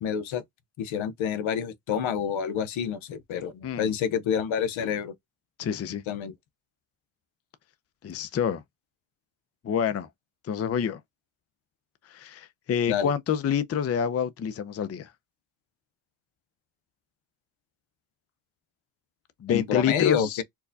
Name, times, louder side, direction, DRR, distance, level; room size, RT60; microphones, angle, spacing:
voice 1, 0.0-0.4 0.8-5.1 6.1-6.3 12.9-13.1 19.5-20.4, left 8 dB, 75° left, 0.8 m, -28 dB
voice 2, 5.6-6.0 8.0-8.6 9.6-10.1 10.5-11.0 12.1-15.1 19.4-20.4, left 8 dB, 30° left, 0.5 m, -27 dB
4.5 x 2.2 x 2.6 m
cardioid pair, 100°, 48 cm